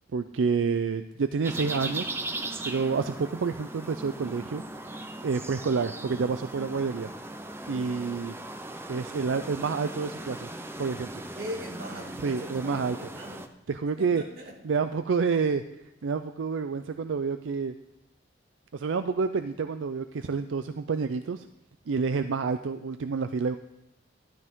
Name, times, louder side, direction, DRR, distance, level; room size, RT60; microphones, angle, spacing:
voice 1, 0.1-2.1 2.6-7.1 7.7-8.3 8.9-10.5 10.8-11.1 12.2-13.0 13.7-14.2 14.6-15.6 16.0-17.7 18.7-21.4 21.9-23.6, right 5 dB, 85° right, 9 dB, 0.4 m, -28 dB
sound 1, 1.4-13.5, right 2 dB, 10° right, 0.5 m, -38 dB
voice 2, 11.3-13.5 14.0-14.6, equal, 55° right, -1 dB, 2.4 m, -40 dB
13.0 x 12.0 x 3.6 m, 0.88 s
head